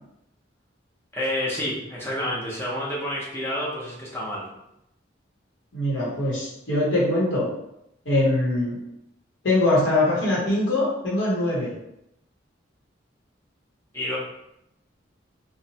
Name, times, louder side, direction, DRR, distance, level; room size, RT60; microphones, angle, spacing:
voice 1, 1.1-4.5 13.9-14.2, left 1 dB, 10° left, -5 dB, 0.6 m, -29 dB
voice 2, 5.7-7.5 8.0-8.8 9.4-11.7, left 1 dB, 80° left, -7 dB, 0.9 m, -22 dB
2.9 x 2.0 x 2.7 m, 0.83 s
head